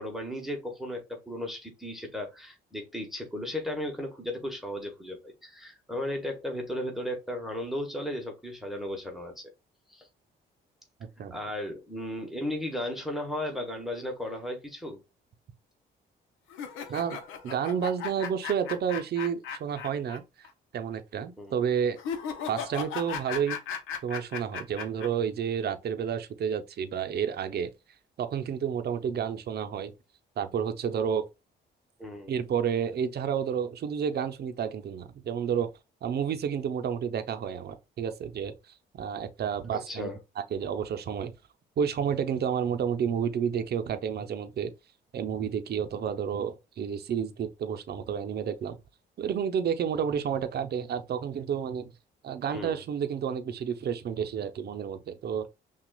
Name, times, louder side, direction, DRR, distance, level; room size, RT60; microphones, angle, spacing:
voice 1, 0.0-9.5 9.9-10.1 11.3-15.0 21.4-21.6 32.0-32.3 39.7-40.2 52.5-52.8, left 1 dB, ahead, 1.1 m, -35 dB
sound 1, 16.5-20.2 20.4-20.5 22.0-25.1, left 7 dB, 90° left, 0.8 m, -36 dB
voice 2, 17.4-20.2 20.7-22.0 22.5-23.6 24.0-27.7 28.2-29.9 30.4-31.3 32.3-35.7 36.0-38.5 39.0-41.3 41.8-44.7 45.1-48.8 49.2-51.9 52.2-55.4, right 8 dB, 55° right, 0.6 m, -30 dB
5.9 x 2.4 x 2.3 m
cardioid pair, 90°, 20 cm